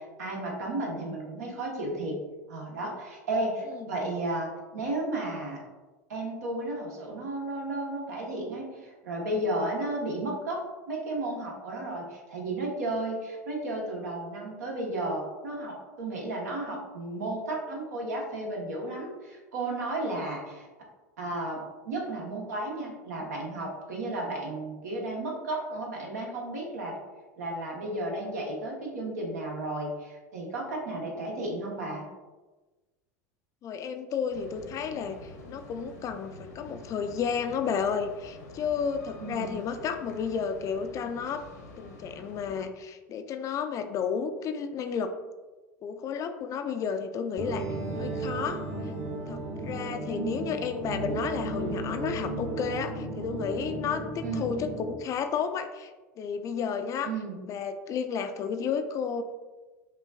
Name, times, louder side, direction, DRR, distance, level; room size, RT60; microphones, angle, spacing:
voice 1, 0.0-2.2 2.5-5.6 6.1-20.7 21.2-27.0 27.4-32.0 39.2-39.5 50.1-50.5 54.2-54.6 57.0-57.4, right 2 dB, 75° right, -1 dB, 1.0 m, -33 dB
voice 2, 33.6-41.5 41.8-45.1 45.8-47.7 48.0-48.6 49.3-55.9 56.2-57.1 57.5-59.2, left 6 dB, 40° left, 8 dB, 0.3 m, -32 dB
sound 1, 34.3-42.6, left 1 dB, 75° left, 0.8 m, -48 dB
sound 2, 47.4-55.0, right 2 dB, 35° right, 0.8 m, -34 dB
5.4 x 2.5 x 2.3 m, 1.2 s
hypercardioid pair, 80°, 9 cm